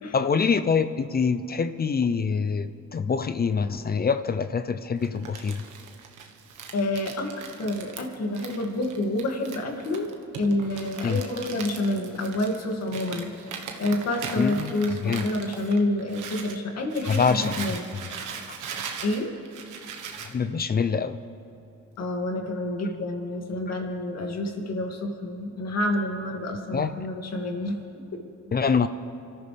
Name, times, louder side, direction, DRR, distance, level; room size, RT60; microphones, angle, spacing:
voice 1, 0.1-5.6 11.0-11.2 14.4-14.7 15.0-15.2 17.1-17.7 20.2-21.2 26.7-26.9 28.5-28.9, left 5 dB, 30° left, 12 dB, 0.6 m, -25 dB
Crumpling crinkling, 5.0-16.6 16.9-20.3, right 6 dB, 80° right, 1.4 m, -39 dB
voice 2, 6.7-13.3 13.8-17.9 19.0-19.3 22.0-27.8 28.1-28.2, left 1 dB, 55° left, 2 dB, 2.4 m, -28 dB
25.5 x 13.5 x 3.5 m, 2.9 s
cardioid pair, 90°, 30 cm